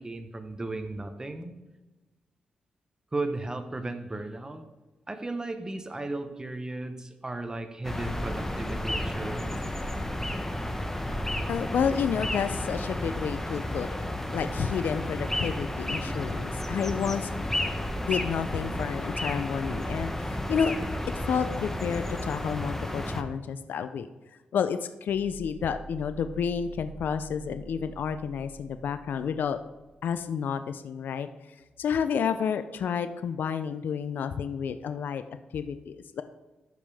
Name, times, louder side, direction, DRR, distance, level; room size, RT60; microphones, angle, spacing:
voice 1, 0.0-1.5 3.1-4.6 5.1-9.6, right 2 dB, 20° right, 8 dB, 1.0 m, -35 dB
sound 1, 7.8-23.2, left 1 dB, 10° left, 0.9 m, -32 dB
voice 2, 11.5-17.5 18.1-20.7 21.3-24.1 24.5-29.6 30.0-31.3 31.8-35.2 35.5-36.2, left 7 dB, 75° left, 11 dB, 0.4 m, -30 dB
sound 2, 25.1-30.1, right 2 dB, 35° left, 1.8 m, -47 dB
12.5 x 5.2 x 3.5 m, 1.1 s
cardioid pair, 75°, 3 cm